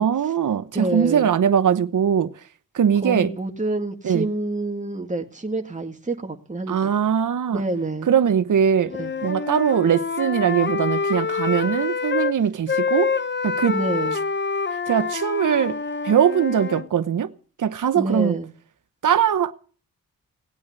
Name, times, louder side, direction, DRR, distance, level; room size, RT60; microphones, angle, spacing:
voice 1, 0.0-2.3 2.7-3.3 4.0-4.3 6.7-7.6 8.1-8.9 9.2-13.1 13.4-13.8 14.9-15.8 16.0-17.3 17.6-18.4 19.0-19.5, right 8 dB, 65° right, 1.0 m, -21 dB
voice 2, 0.7-1.3 3.0-6.9 7.5-8.1 9.0-9.1 13.7-14.2 17.9-18.5, right 2 dB, 20° right, 2.1 m, -27 dB
Wind instrument woodwind instrument, 8.8-12.3 12.7-16.9, left 5 dB, 35° left, 0.9 m, -26 dB
17.5 x 8.7 x 8.1 m
cardioid pair, 40°, 33 cm